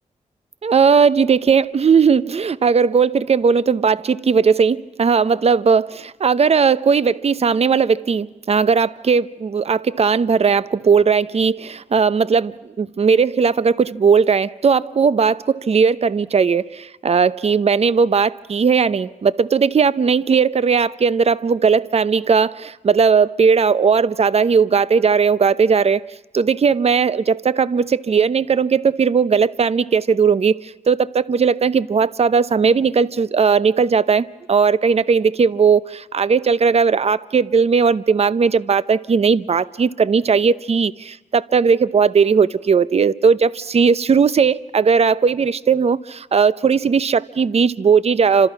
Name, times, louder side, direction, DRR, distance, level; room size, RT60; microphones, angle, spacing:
voice 1, 0.6-26.0 26.3-48.5, right 5 dB, 45° right, 0.8 m, -17 dB
29.5 x 27.0 x 5.9 m
cardioid pair, 75°, 14 cm